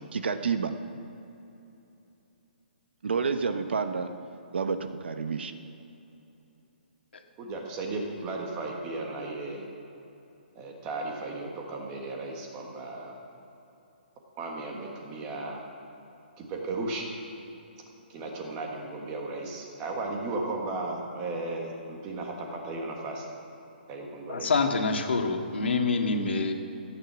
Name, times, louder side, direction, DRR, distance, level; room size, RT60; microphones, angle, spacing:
voice 1, 0.1-0.7 3.0-4.1 4.5-5.5, right 5 dB, 75° right, 8 dB, 1.2 m, -29 dB
voice 2, 7.4-9.6 10.5-13.1 14.4-15.6 16.4-17.1 18.1-23.3 23.9-24.5, right 2 dB, 15° right, 0 dB, 1.4 m, -35 dB
voice 3, 24.3-26.5, left 4 dB, 90° left, 3 dB, 2.0 m, -26 dB
15.0 x 9.3 x 7.4 m, 3.0 s
hypercardioid pair, 180°, 6 cm